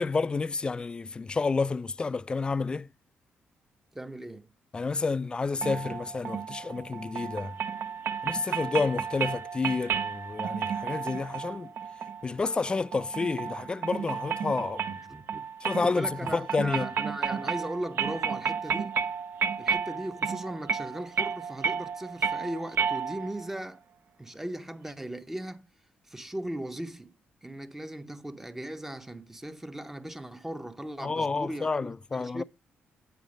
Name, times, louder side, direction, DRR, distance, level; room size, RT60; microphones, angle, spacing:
voice 1, 0.0-2.9 4.7-7.6 8.2-11.7 12.2-14.9 15.6-16.9 31.0-32.4, left 4 dB, 25° left, 0.3 m, -30 dB
voice 2, 3.9-4.5 15.1-15.4 15.8-19.1 19.6-23.8 24.2-25.7 26.0-27.2 27.4-32.4, right 1 dB, 10° right, 0.7 m, -38 dB
sound 1, 5.6-23.5, right 6 dB, 60° right, 0.6 m, -32 dB
9.2 x 4.0 x 5.1 m
cardioid pair, 100°, 4 cm